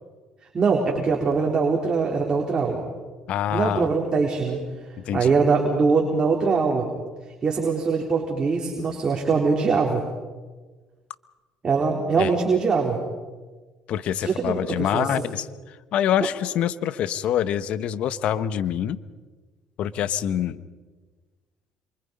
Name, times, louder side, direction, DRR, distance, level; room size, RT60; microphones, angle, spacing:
voice 1, 0.5-2.8 3.5-4.6 5.1-6.9 7.4-10.0 11.6-13.0 14.2-15.1, right 4 dB, 35° right, 0 dB, 4.0 m, -22 dB
voice 2, 3.3-3.9 5.1-5.3 12.2-12.3 13.9-19.0 19.8-20.6, left 10 dB, 65° left, 14 dB, 1.2 m, -25 dB
27.5 x 25.0 x 5.4 m, 1.3 s
supercardioid pair, 75°, 2 cm